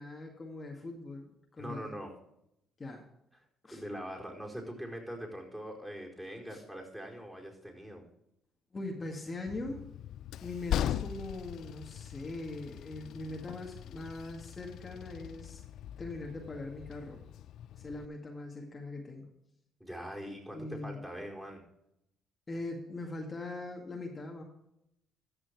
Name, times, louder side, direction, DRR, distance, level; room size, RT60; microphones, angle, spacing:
voice 1, 0.0-2.0 2.8-3.1 3.6-3.8 6.5-6.6 8.7-9.9 10.4-15.6 16.0-17.3 17.7-19.3 20.5-21.1 22.5-24.4, left 2 dB, 35° left, 0 dB, 2.0 m, -41 dB
voice 2, 1.6-2.1 3.7-8.0 19.8-21.6, equal, 10° right, -1 dB, 4.3 m, -42 dB
Train, 9.5-18.1, left 11 dB, 70° left, 0.3 m, -40 dB
14.0 x 6.1 x 4.8 m, 0.80 s
supercardioid pair, 60°, 0 cm